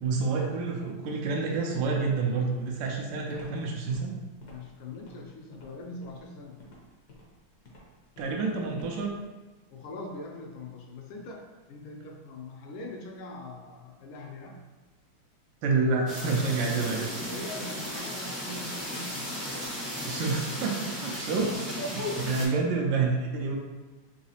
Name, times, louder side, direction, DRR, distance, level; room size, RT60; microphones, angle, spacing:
voice 1, 0.0-4.1 8.2-9.1 15.6-17.1 20.0-23.6, right 4 dB, 75° right, -1 dB, 1.1 m, -28 dB
Walk footsteps, 2.8-9.2, left 1 dB, 60° left, 0.9 m, -52 dB
voice 2, 4.5-6.6 9.7-14.6 17.3-19.3 22.4-22.6, left 2 dB, 80° left, 1 dB, 1.4 m, -42 dB
sound 1, 16.1-22.5, left 1 dB, ahead, 0.5 m, -35 dB
4.0 x 2.7 x 2.8 m, 1.2 s
omnidirectional pair, 2.4 m